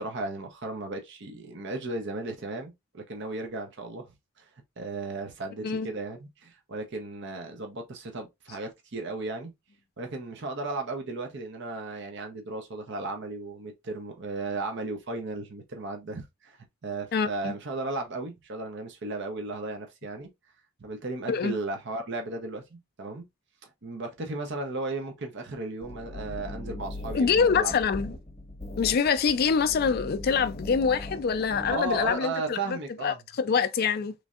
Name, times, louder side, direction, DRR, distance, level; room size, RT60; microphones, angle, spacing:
voice 1, 0.0-4.1 4.4-4.5 4.8-9.5 10.0-20.3 20.8-23.3 23.8-27.8 31.7-33.2, right 2 dB, 60° right, 0.7 m, -35 dB
voice 2, 17.1-17.5 21.3-21.6 27.1-28.1 28.8-34.1, left 6 dB, 45° left, 0.4 m, -25 dB
sound 1, 25.8-32.1, left 1 dB, 30° left, 0.8 m, -39 dB
3.1 x 2.6 x 2.4 m
head